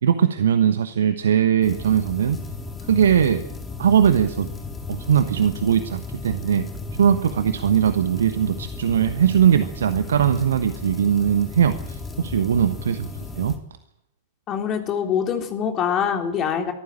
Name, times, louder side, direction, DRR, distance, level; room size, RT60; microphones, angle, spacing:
voice 1, 0.0-2.4 2.9-3.4 3.8-4.5 4.9-6.7 7.0-13.5, right 8 dB, 65° right, 10 dB, 1.2 m, -20 dB
sound 1, 1.6-13.6, left 3 dB, 15° left, 4.0 m, -35 dB
voice 2, 14.5-16.7, left 8 dB, 30° left, 4 dB, 3.6 m, -24 dB
24.0 x 14.5 x 8.9 m, 0.75 s
figure-of-eight pair, 90°, 0 cm